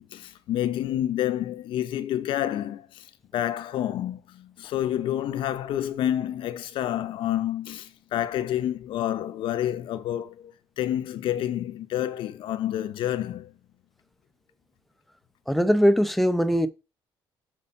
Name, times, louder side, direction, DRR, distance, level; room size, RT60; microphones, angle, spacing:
voice 1, 0.0-13.5, left 12 dB, 70° left, 0.7 m, -29 dB
voice 2, 15.5-16.7, equal, ahead, 0.8 m, -21 dB
7.1 x 5.3 x 5.3 m
cardioid pair, 125°, 9 cm